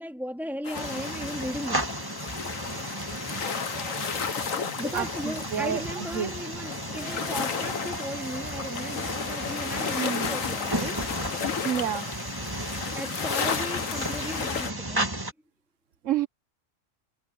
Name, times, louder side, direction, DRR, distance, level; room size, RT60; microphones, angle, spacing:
voice 1, 0.0-1.9 4.7-11.1 12.9-15.2, equal, ahead, 3.3 m, -36 dB
sound 1, 0.6-14.7, left 7 dB, 90° left, 1.6 m, -33 dB
sound 2, 0.7-15.3, right 1 dB, 15° right, 2.2 m, -34 dB
voice 2, 4.6-6.3 10.0-10.3 11.6-12.1 16.0-16.3, right 9 dB, 70° right, 1.3 m, -30 dB
sound 3, 5.9-6.2 7.0-10.5, right 1 dB, 55° left, 3.3 m, -43 dB
omnidirectional pair, 1.3 m